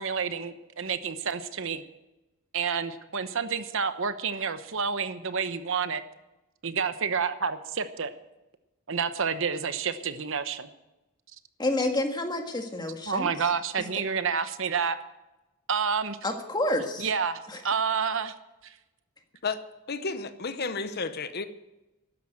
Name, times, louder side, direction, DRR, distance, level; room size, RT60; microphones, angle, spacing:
voice 1, 0.0-1.8 2.5-6.0 6.6-8.1 8.9-10.7 13.1-15.0 15.7-16.2 17.0-18.3 18.6-18.7, right 6 dB, 65° right, 11 dB, 0.9 m, -29 dB
voice 2, 11.6-13.3 16.2-17.1 17.5-17.6, left 1 dB, 20° left, 4 dB, 1.7 m, -29 dB
voice 3, 19.9-21.5, left 4 dB, 50° left, 11 dB, 0.9 m, -32 dB
13.0 x 10.5 x 7.7 m, 0.99 s
head